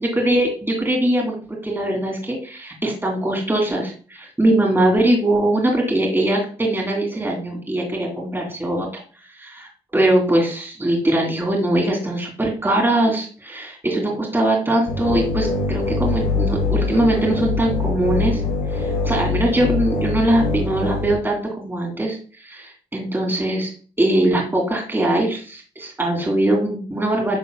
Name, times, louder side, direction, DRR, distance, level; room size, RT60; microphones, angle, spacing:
voice 1, 0.0-1.4 1.6-8.9 9.3-18.4 18.7-22.2 22.4-27.4, right 1 dB, 15° right, -1 dB, 2.7 m, -21 dB
sound 1, 14.9-21.1, left 3 dB, 85° left, 1.9 m, -23 dB
9.8 x 5.2 x 2.2 m, 0.38 s
supercardioid pair, 60°, 14 cm